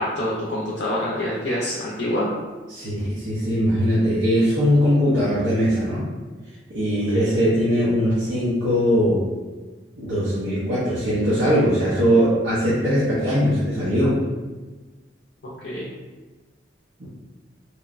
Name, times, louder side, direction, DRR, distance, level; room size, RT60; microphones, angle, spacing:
voice 1, 0.0-2.3 7.1-7.3 15.4-15.9, left 1 dB, 60° left, -6 dB, 0.4 m, -26 dB
voice 2, 2.7-6.1 6.7-9.2 10.0-14.2 17.0-17.1, equal, 75° right, -11 dB, 0.6 m, -20 dB
3.0 x 2.0 x 2.4 m, 1.3 s
head